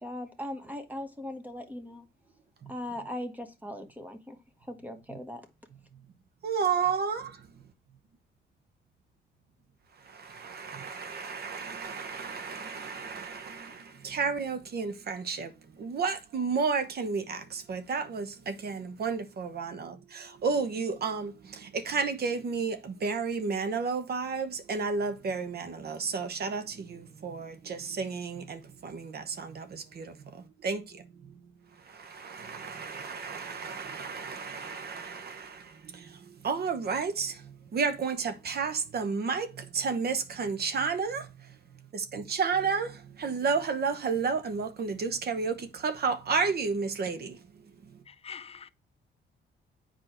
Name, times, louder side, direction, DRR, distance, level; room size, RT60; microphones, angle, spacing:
voice 1, 0.0-2.0 2.7-4.4 4.7-5.4, left 1 dB, 10° right, 1.2 m, -39 dB
voice 2, 6.4-7.4 10.1-15.5 15.8-30.2 30.6-31.0 31.9-41.5 41.9-47.4, right 5 dB, 55° right, 1.1 m, -32 dB
voice 3, 48.1-48.7, left 7 dB, 30° left, 0.5 m, -44 dB
7.9 x 4.8 x 4.3 m
cardioid pair, 90°, 20 cm